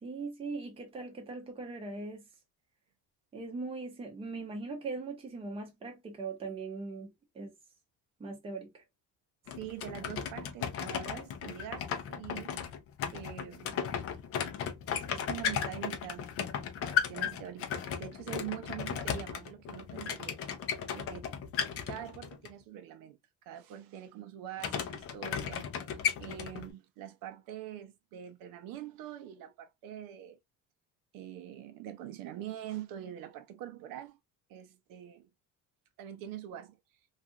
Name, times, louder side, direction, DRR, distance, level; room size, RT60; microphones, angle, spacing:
voice 1, 0.0-2.3 3.3-7.5 8.2-8.8, right 3 dB, 15° right, 0.6 m, -40 dB
sound 1, 9.5-22.5 24.6-26.7, left 8 dB, 40° left, 0.5 m, -35 dB
voice 2, 9.5-12.7 13.1-13.9 14.9-16.3 16.8-20.4 20.9-21.4 21.9-23.2 23.5-25.7 26.2-30.4 31.1-34.2 34.5-35.3 36.0-36.8, right 11 dB, 70° right, 0.6 m, -44 dB
2.5 x 2.4 x 2.7 m
cardioid pair, 180°, 36 cm